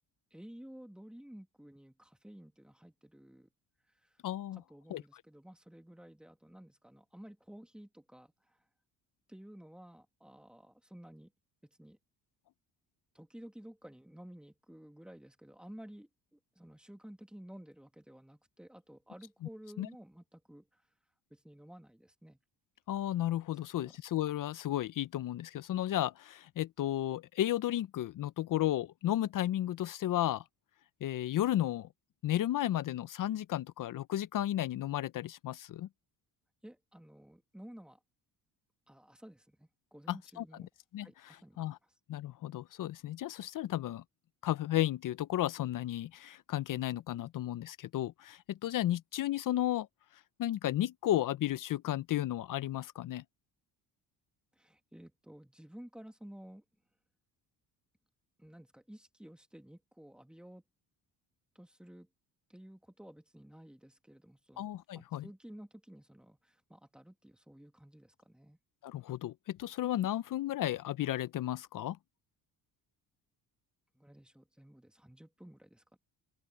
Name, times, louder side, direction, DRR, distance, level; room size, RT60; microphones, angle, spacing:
voice 1, 0.3-3.5 3.9-4.2 4.5-8.6 9.3-11.3 11.8-12.0 13.1-20.8 21.3-22.4 23.8-23.9 36.6-38.0 38.9-40.7 41.0-41.7 54.5-56.6 58.4-60.6 61.5-62.1 62.5-64.6 64.9-68.6 73.9-76.0, equal, ahead, 2.1 m, -53 dB
voice 2, 4.2-4.6 4.9-5.0 19.8-19.9 22.9-30.4 31.0-31.9 32.2-35.9 40.1-40.4 40.9-41.8 42.1-44.0 44.4-49.9 50.4-53.2 64.6-65.2 68.8-72.0, left 13 dB, 50° left, 0.6 m, -33 dB
open air
cardioid pair, 120°, 41 cm